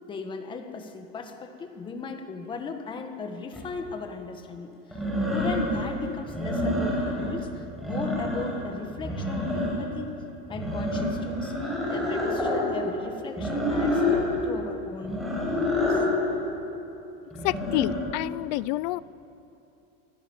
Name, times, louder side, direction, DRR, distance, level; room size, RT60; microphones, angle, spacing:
voice 1, 0.1-10.1 10.5-16.0, left 4 dB, 15° left, 5 dB, 1.6 m, -37 dB
sound 1, 3.5-3.6 4.9-5.8 6.3-7.3 7.7-8.6 9.0-9.9 10.5-12.6 13.4-14.2 15.0-16.1 17.3-18.0, left 1 dB, ahead, 7.2 m, -27 dB
voice 2, 17.4-19.0, left 19 dB, 45° left, 19 dB, 0.6 m, -28 dB
26.5 x 24.5 x 7.3 m, 2.9 s
supercardioid pair, 180°, 29 cm